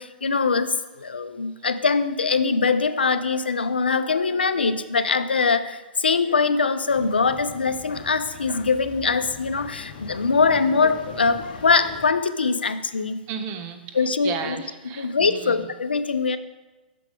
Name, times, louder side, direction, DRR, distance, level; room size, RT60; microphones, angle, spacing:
voice 1, 0.0-13.2 13.9-14.6 15.0-16.4, left 4 dB, 85° left, 12 dB, 0.4 m, -22 dB
sound 1, 6.9-12.1, left 5 dB, 60° left, 0.8 m, -41 dB
voice 2, 13.3-14.0 14.2-15.6, right 7 dB, 35° right, 7 dB, 0.6 m, -33 dB
6.7 x 4.6 x 5.0 m, 1.2 s
figure-of-eight pair, 115°, 5 cm